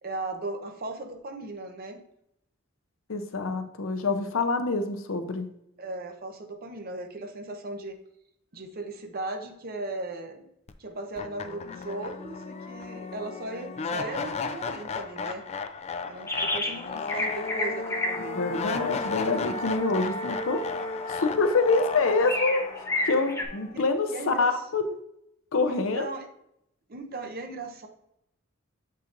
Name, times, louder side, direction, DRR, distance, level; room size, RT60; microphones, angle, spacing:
voice 1, 0.0-2.0 5.8-8.0 8.5-10.5 10.8-15.4 16.0-18.7 24.1-24.6 25.7-26.3 26.9-27.9, right 2 dB, 50° right, 5 dB, 0.8 m, -37 dB
voice 2, 3.1-5.5 18.4-20.6 21.2-22.7 23.1-25.0 25.5-26.1, left 3 dB, 70° left, 8 dB, 0.6 m, -26 dB
sound 1, 10.7-10.8 11.2-24.2, left 4 dB, 30° left, 0.4 m, -34 dB
sound 2, 16.3-16.8 17.1-23.5, left 2 dB, 15° left, 0.8 m, -33 dB
7.7 x 5.6 x 2.5 m, 0.78 s
head